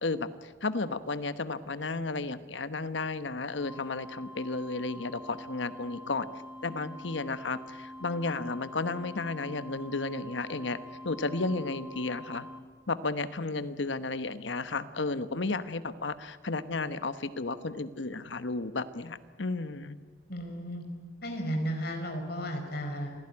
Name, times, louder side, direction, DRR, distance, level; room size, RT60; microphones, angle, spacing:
voice 1, 0.0-6.3 6.6-10.8 11.0-12.5 12.9-20.0, left 3 dB, 75° left, 13 dB, 1.1 m, -33 dB
sound 1, 3.5-12.6, left 1 dB, 5° right, 2.1 m, -45 dB
voice 2, 20.3-20.8 21.2-23.1, equal, 55° left, 4 dB, 4.6 m, -34 dB
26.5 x 17.0 x 9.8 m, 1.5 s
head